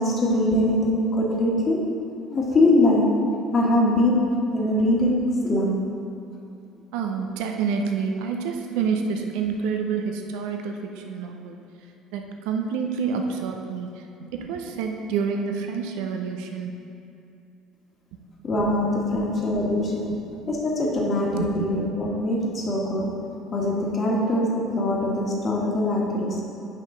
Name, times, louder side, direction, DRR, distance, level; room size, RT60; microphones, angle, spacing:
voice 1, 0.0-1.8 2.3-3.2 3.5-5.8 18.4-20.1 20.5-23.2 23.5-26.4, left 1 dB, 40° left, -2 dB, 1.6 m, -22 dB
voice 2, 6.9-11.6 12.1-14.0 14.3-16.7 18.1-18.2 19.1-19.2 20.1-20.2 21.4-21.7, right 6 dB, 65° right, 3 dB, 0.6 m, -28 dB
8.2 x 5.3 x 3.9 m, 2.8 s
figure-of-eight pair, 60°, 0 cm